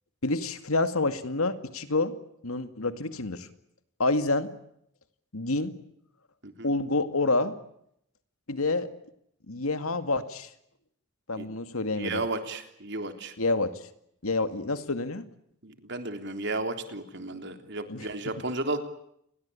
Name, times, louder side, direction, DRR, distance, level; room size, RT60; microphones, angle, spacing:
voice 1, 0.2-2.1 2.4-3.5 4.0-4.5 5.3-5.7 6.6-7.6 8.5-8.9 9.5-10.5 11.3-12.2 13.4-13.7 14.2-15.2 17.9-18.1, left 2 dB, 80° left, 10 dB, 2.2 m, -28 dB
voice 2, 11.9-13.3 15.6-18.8, right 2 dB, 50° right, 7 dB, 3.5 m, -33 dB
29.5 x 22.0 x 8.6 m, 0.74 s
head